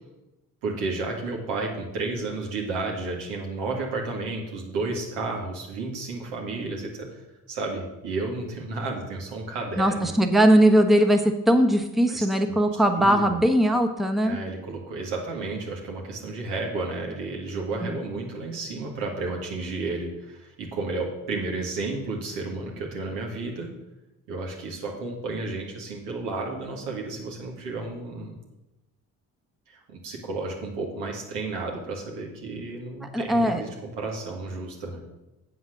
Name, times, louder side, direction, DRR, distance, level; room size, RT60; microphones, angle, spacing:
voice 1, 0.6-7.2 7.5-10.1 12.1-12.6 13.0-13.4 14.2-23.7 24.3-28.4 29.7-35.0, right 3 dB, 75° right, -1 dB, 2.1 m, -32 dB
voice 2, 9.8-14.4 17.8-18.0 33.1-33.6, right 1 dB, ahead, 4 dB, 1.1 m, -20 dB
8.1 x 5.1 x 6.5 m, 0.98 s
hypercardioid pair, 45°, 43 cm